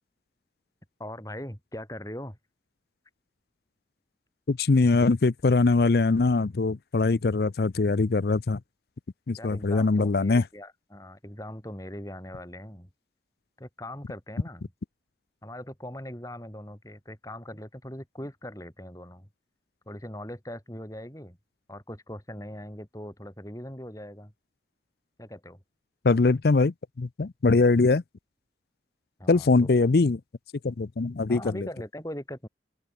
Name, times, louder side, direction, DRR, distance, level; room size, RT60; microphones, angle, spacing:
voice 1, 1.0-2.4 7.1-7.2 9.4-12.9 13.6-14.7 15.4-19.3 19.9-21.4 21.7-24.3 25.2-25.6 29.2-29.9 31.3-32.5, left 1 dB, 20° left, 5.7 m, -40 dB
voice 2, 4.5-8.6 9.3-10.4 26.0-28.0 29.3-30.2 30.6-31.7, left 3 dB, 60° left, 0.5 m, -22 dB
open air
head